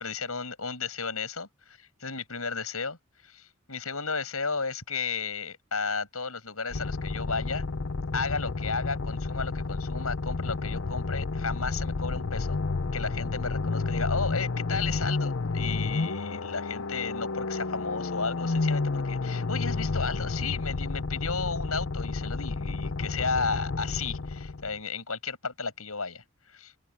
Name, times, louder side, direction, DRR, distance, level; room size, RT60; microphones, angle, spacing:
voice 1, 0.0-1.5 2.0-3.0 3.2-7.6 8.1-12.6 12.9-26.7, left 4 dB, 90° left, 7.2 m, -33 dB
sound 1, 6.7-24.8, left 3 dB, 60° left, 0.7 m, -31 dB
open air
head